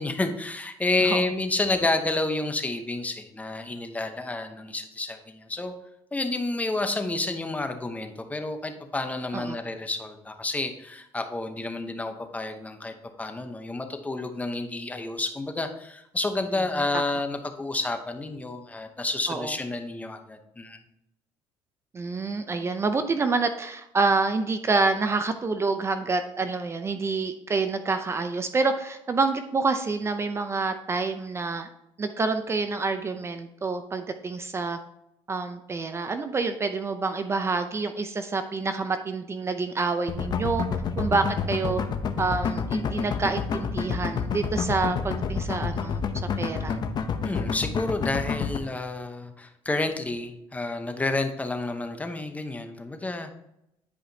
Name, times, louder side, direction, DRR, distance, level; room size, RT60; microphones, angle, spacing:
voice 1, 0.0-5.7 6.1-20.8 47.2-53.3, left 2 dB, 15° left, 6 dB, 0.9 m, -30 dB
voice 2, 1.0-1.3 9.3-9.6 16.9-17.0 19.3-19.5 21.9-31.7 32.0-34.8 35.3-40.6 41.0-41.8 42.2-46.0 46.4-46.8, right 4 dB, 25° right, 8 dB, 0.6 m, -27 dB
sound 1, 40.1-48.6, left 6 dB, 45° left, 0.8 m, -28 dB
10.5 x 5.0 x 2.8 m, 0.81 s
cardioid pair, 105°, 10 cm